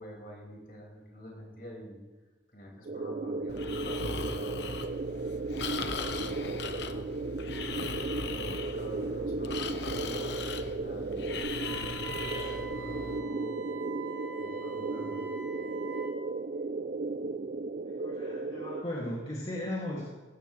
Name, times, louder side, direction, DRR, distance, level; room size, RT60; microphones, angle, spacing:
voice 1, 0.0-2.0 2.5-4.7 5.6-7.0 8.2-13.5 14.4-15.2, equal, 55° left, -2 dB, 5.7 m, -47 dB
sound 1, 2.9-18.8, right 3 dB, 50° right, 0.4 m, -35 dB
Breathing, 3.5-13.2, left 4 dB, 75° left, 1.0 m, -38 dB
Wind instrument woodwind instrument, 11.6-16.2, right 6 dB, 85° right, 2.3 m, -44 dB
voice 2, 17.8-20.2, left 1 dB, 35° left, -6 dB, 2.6 m, -37 dB
19.0 x 16.5 x 3.4 m, 1.2 s
head